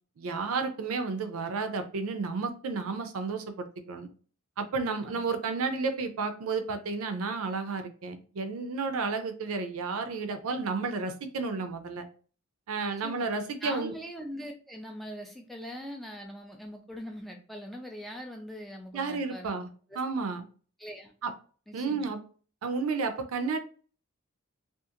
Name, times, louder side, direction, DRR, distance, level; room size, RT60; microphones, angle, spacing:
voice 1, 0.2-4.1 4.6-12.1 12.7-13.9 18.9-19.7 20.0-20.4 21.2-21.3 21.7-22.2 22.6-23.6, right 4 dB, 75° right, 8 dB, 0.4 m, -32 dB
voice 2, 12.8-13.3 13.6-19.5 19.9-20.0 20.8-21.1 21.7-22.1, equal, ahead, 2 dB, 0.3 m, -42 dB
2.8 x 2.4 x 2.4 m, 0.41 s
head